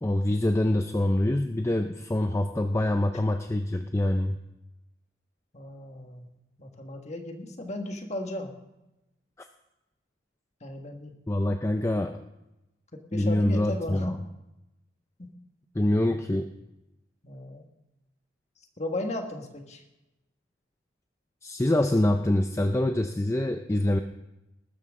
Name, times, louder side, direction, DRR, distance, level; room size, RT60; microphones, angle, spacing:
voice 1, 0.0-4.4 11.3-12.2 13.1-14.1 15.8-16.5 21.4-24.0, left 1 dB, 15° left, 6 dB, 0.5 m, -25 dB
voice 2, 5.5-6.3 6.6-8.5 10.6-11.1 12.9-14.2 15.2-15.3 17.2-17.7 18.8-19.8, left 1 dB, 35° left, 4 dB, 1.6 m, -35 dB
20.0 x 12.5 x 3.7 m, 0.95 s
head